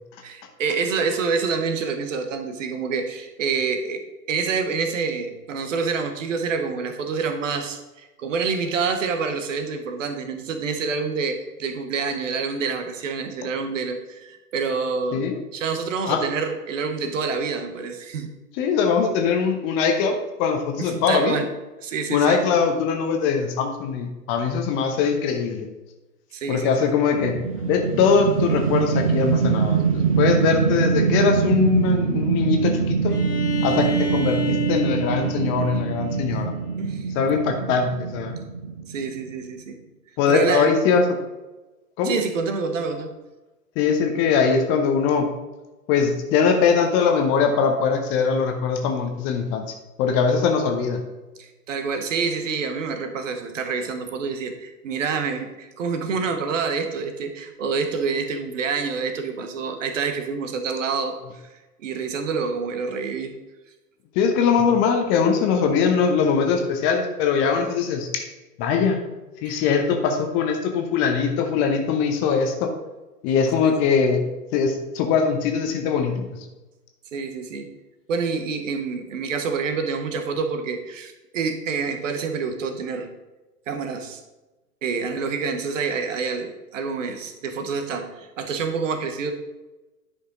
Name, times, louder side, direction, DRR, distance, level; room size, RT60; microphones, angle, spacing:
voice 1, 0.2-4.0 4.3-15.2 15.5-18.3 20.8-21.5 21.8-22.4 26.3-26.7 36.5-37.1 38.9-39.8 40.3-40.7 42.0-43.1 51.4-61.2 61.5-63.3 69.5-69.6 73.6-73.7 77.1-77.7 78.1-83.1 83.7-84.2 84.8-89.3, right 5 dB, 55° right, 7 dB, 1.2 m, -27 dB
voice 2, 18.5-21.4 22.1-25.7 26.5-27.4 27.6-33.1 33.6-36.5 37.1-38.3 40.2-41.0 42.0-42.2 43.8-45.3 45.9-49.6 50.0-51.0 64.1-68.2 68.6-69.0 69.4-72.7 73.2-74.2 74.5-76.3, left 6 dB, 25° left, 5 dB, 0.9 m, -21 dB
sound 1, 27.1-39.4, right 6 dB, 25° right, 0.3 m, -24 dB
Bowed string instrument, 33.1-36.8, right 3 dB, 75° left, 1.3 m, -29 dB
10.0 x 5.5 x 3.9 m, 1.1 s
figure-of-eight pair, 110°, 47 cm